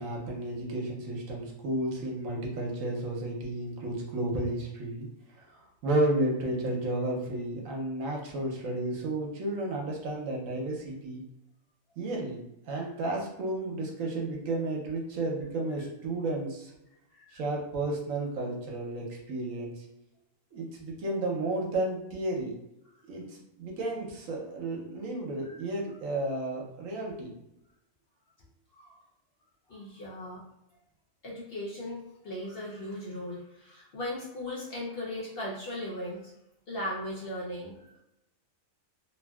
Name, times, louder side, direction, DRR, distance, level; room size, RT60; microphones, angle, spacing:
voice 1, 0.0-5.1 5.4-5.5 5.8-11.2 12.0-12.4 12.7-16.7 17.3-19.8 20.5-22.5 23.1-27.3, right 2 dB, 70° right, -1 dB, 1.1 m, -32 dB
voice 2, 29.7-30.4 31.2-36.3 36.7-38.0, left 1 dB, 60° left, -5 dB, 0.6 m, -38 dB
2.8 x 2.5 x 2.3 m, 0.84 s
omnidirectional pair, 1.5 m